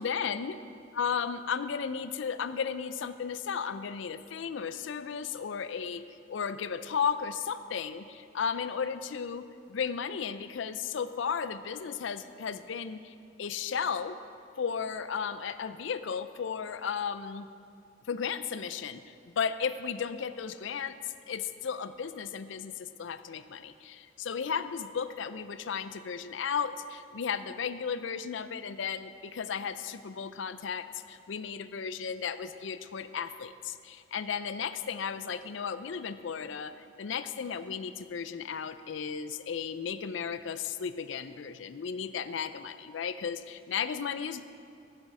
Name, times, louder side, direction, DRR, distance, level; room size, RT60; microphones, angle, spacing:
voice 1, 0.0-0.6 0.9-14.2 14.6-17.5 18.1-44.4, left 6 dB, 70° left, 12 dB, 0.4 m, -34 dB
16.0 x 7.4 x 4.8 m, 2.4 s
head